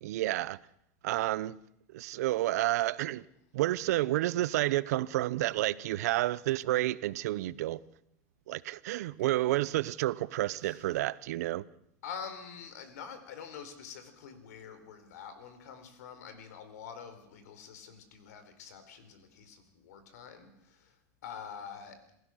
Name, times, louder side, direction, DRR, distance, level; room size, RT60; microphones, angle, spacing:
voice 1, 0.0-0.6 1.0-1.6 1.9-3.2 3.5-7.8 8.5-11.6, right 16 dB, 75° right, 0.8 m, -30 dB
voice 2, 12.0-21.0 21.2-22.0, left 7 dB, 80° left, 4.1 m, -46 dB
27.5 x 16.0 x 6.5 m
supercardioid pair, 115°, 9 cm